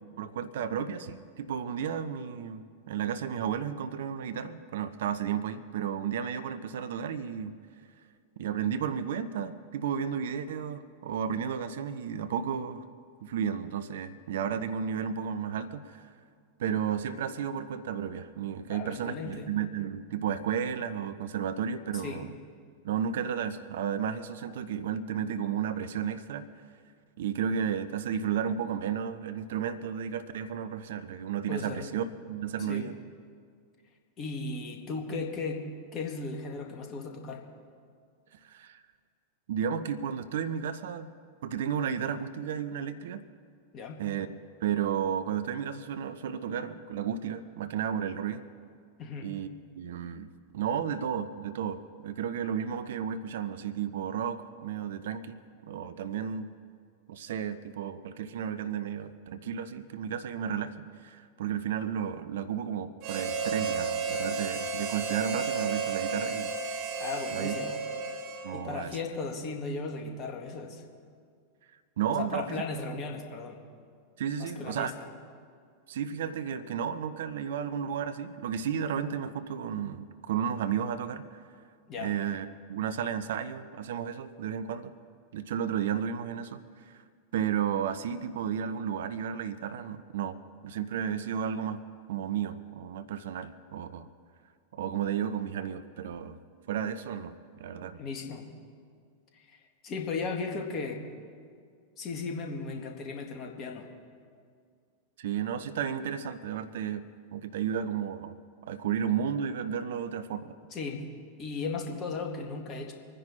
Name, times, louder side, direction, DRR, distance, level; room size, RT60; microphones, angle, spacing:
voice 1, 0.2-7.6 8.4-12.9 13.2-16.1 16.6-22.3 22.8-26.5 27.2-33.0 38.3-38.8 39.5-41.1 41.4-43.2 44.0-44.3 44.6-48.4 49.2-49.5 49.7-50.3 50.5-55.4 55.6-56.5 57.1-66.8 67.3-67.5 68.4-69.0 72.0-72.5 74.2-74.9 75.9-81.4 82.0-84.9 85.3-87.0 87.3-90.4 90.6-91.8 92.1-94.1 94.7-96.4 96.7-98.0 105.2-107.1 107.3-108.4 108.7-110.5, right 8 dB, 60° right, 12 dB, 0.6 m, -33 dB
voice 2, 18.7-19.5 21.9-22.3 31.5-31.9 32.6-32.9 34.2-37.5 43.7-44.0 49.0-49.3 67.0-67.8 68.5-70.8 72.1-73.6 74.4-75.1 81.9-82.1 98.0-98.5 99.3-101.1 102.0-103.9 110.7-111.1 111.4-112.9, left 4 dB, 30° left, 3 dB, 1.9 m, -36 dB
Harmonica, 63.0-68.8, right 5 dB, 40° right, 1.2 m, -32 dB
25.0 x 10.0 x 4.3 m, 2.1 s
figure-of-eight pair, 90°, 0 cm